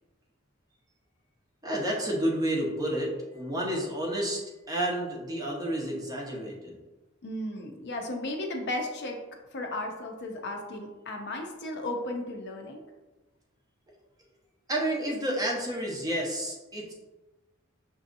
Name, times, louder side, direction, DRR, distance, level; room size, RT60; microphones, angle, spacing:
voice 1, 1.6-4.4 4.7-6.8 14.7-16.9, right 1 dB, 20° right, -2 dB, 0.8 m, -30 dB
voice 2, 7.2-9.2 9.5-12.9, left 1 dB, 55° left, 2 dB, 0.6 m, -35 dB
6.1 x 2.7 x 2.5 m, 1.1 s
head